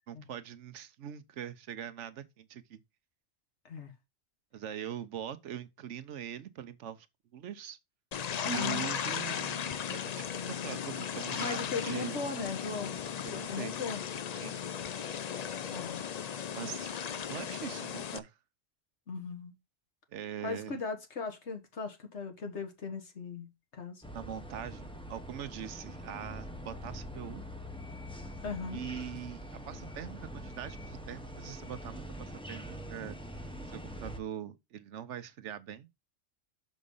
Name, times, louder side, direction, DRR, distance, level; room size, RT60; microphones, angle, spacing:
voice 1, 0.1-2.8 4.5-7.1 7.3-7.8 8.5-12.2 13.2-13.8 14.4-14.6 16.5-18.3 20.1-20.8 24.1-27.4 28.7-29.4 29.7-33.2 33.7-35.9, right 9 dB, 90° right, 1.1 m, -42 dB
sound 1, 8.1-18.2, left 8 dB, 50° left, 0.5 m, -36 dB
voice 2, 8.4-8.9 11.4-14.0 15.7-16.0 19.1-19.5 20.4-24.0 28.4-28.8, left 4 dB, 75° left, 1.8 m, -38 dB
sound 2, 24.0-34.2, equal, 5° left, 0.7 m, -44 dB
6.3 x 5.2 x 5.4 m
omnidirectional pair, 1.2 m